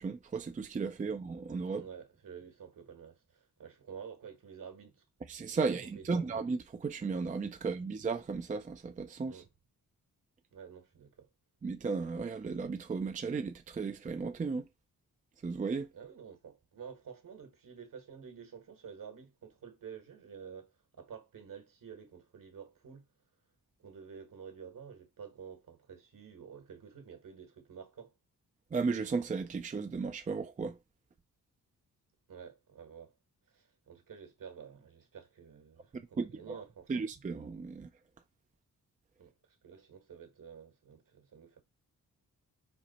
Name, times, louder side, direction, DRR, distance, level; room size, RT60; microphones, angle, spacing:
voice 1, 0.0-1.8 5.3-9.4 11.6-14.6 15.4-15.9 28.7-30.8 35.9-36.6 36.9-37.9, right 4 dB, 20° right, 0.4 m, -35 dB
voice 2, 1.7-5.0 5.8-6.2 9.3-9.5 10.5-11.3 15.9-23.0 23.8-28.1 32.3-33.1 33.5-37.0 39.2-39.3 39.6-41.6, right 7 dB, 60° right, 1.4 m, -50 dB
4.4 x 2.1 x 4.1 m
supercardioid pair, 50°, 37 cm